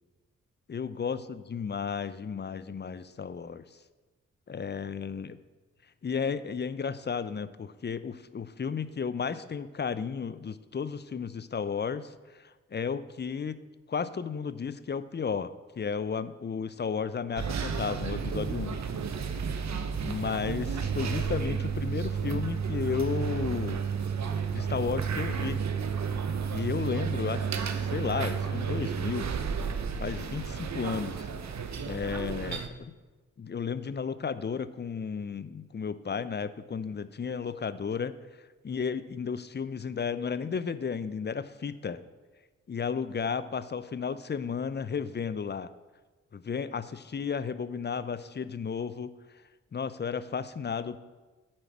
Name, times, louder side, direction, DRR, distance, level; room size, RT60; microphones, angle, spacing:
voice 1, 0.7-3.7 4.5-5.4 6.0-18.8 20.0-23.8 24.5-25.6 26.5-29.3 30.0-31.3 31.8-32.9 33.4-38.1 38.6-42.0 42.7-45.7 46.3-49.1 49.7-51.0, left 6 dB, 30° left, 13 dB, 0.6 m, -33 dB
sound 1, 17.4-32.7, right 6 dB, 55° right, 0.9 m, -32 dB
8.6 x 4.7 x 7.3 m, 1.3 s
supercardioid pair, 40°, 32 cm